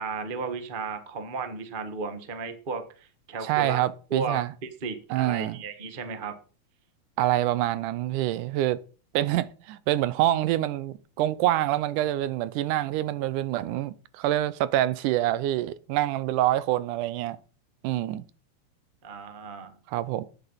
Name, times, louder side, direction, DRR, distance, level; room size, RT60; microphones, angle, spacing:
voice 1, 0.0-3.8 4.1-6.4 19.0-19.7, right 4 dB, 35° right, 0.8 m, -34 dB
voice 2, 3.4-4.5 5.1-5.6 7.2-8.8 9.1-17.4 17.8-18.2 19.9-20.2, right 14 dB, 90° right, 2.3 m, -26 dB
11.0 x 9.1 x 5.5 m
omnidirectional pair, 3.5 m